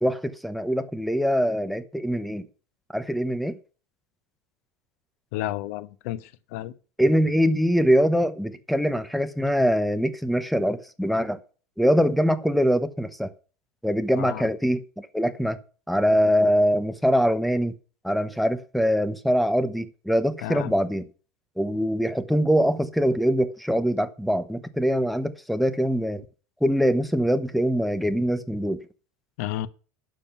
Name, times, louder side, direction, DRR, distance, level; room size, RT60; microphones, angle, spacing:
voice 1, 0.0-2.5 2.9-3.6 7.0-11.4 11.8-13.3 13.8-15.6 15.9-17.7 18.0-21.0 21.6-26.2 26.6-28.8, equal, ahead, 0.9 m, -23 dB
voice 2, 5.3-6.2 6.5-6.7 14.1-14.5 20.4-20.7 29.4-29.7, left 14 dB, 70° left, 1.1 m, -31 dB
12.0 x 7.6 x 5.8 m
supercardioid pair, 160°, 8 cm